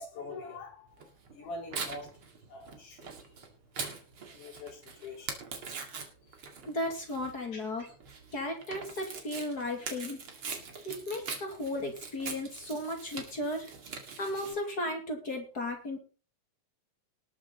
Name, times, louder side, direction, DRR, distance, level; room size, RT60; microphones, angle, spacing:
voice 1, 0.0-2.1 2.5-3.3 3.8-4.0 4.3-5.6 7.5-7.6, left 2 dB, 75° left, -1 dB, 5.6 m, -45 dB
Tearing, 1.0-14.5, right 5 dB, 45° right, 2.8 m, -42 dB
voice 2, 6.7-7.9 8.3-10.2 10.8-13.7 14.2-16.0, left 1 dB, 30° left, 3 dB, 2.8 m, -35 dB
19.5 x 7.5 x 4.0 m, 0.35 s
omnidirectional pair, 3.6 m